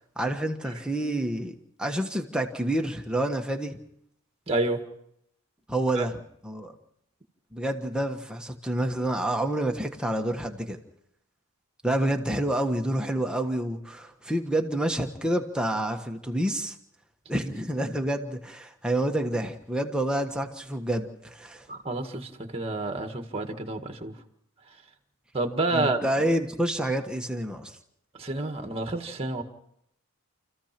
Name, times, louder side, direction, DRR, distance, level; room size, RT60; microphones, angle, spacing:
voice 1, 0.2-3.8 5.7-6.7 7.5-10.8 11.8-16.7 17.3-21.7 25.7-27.8, right 1 dB, 5° right, 3 dB, 1.4 m, -28 dB
voice 2, 4.5-4.8 6.0-6.1 21.7-24.2 25.3-26.0 28.2-29.4, right 2 dB, 25° right, 5 dB, 1.8 m, -29 dB
29.5 x 15.0 x 6.0 m, 0.77 s
head